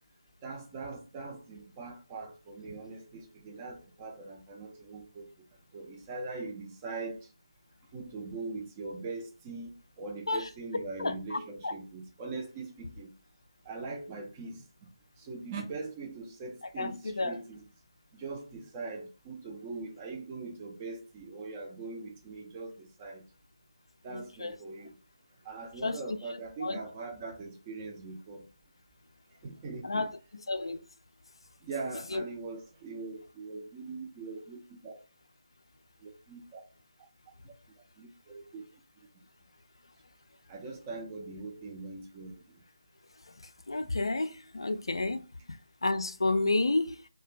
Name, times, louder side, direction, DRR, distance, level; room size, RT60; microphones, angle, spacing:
voice 1, 0.4-5.3 5.7-7.2 7.9-13.1 13.6-14.6 15.2-17.6 18.1-23.2 24.0-24.9 25.4-28.5 29.4-30.1 31.6-35.0 36.0-36.6 37.4-37.5 38.0-38.6 40.5-42.4, right 3 dB, 15° right, 0.4 m, -41 dB
voice 2, 11.0-11.7 16.8-17.4 24.1-24.6 25.8-26.0 26.6-26.8 29.8-30.1 30.5-30.8 32.1-32.2 43.7-47.1, left 2 dB, 60° left, 0.3 m, -31 dB
2.3 x 2.2 x 3.0 m
figure-of-eight pair, 155°, 3 cm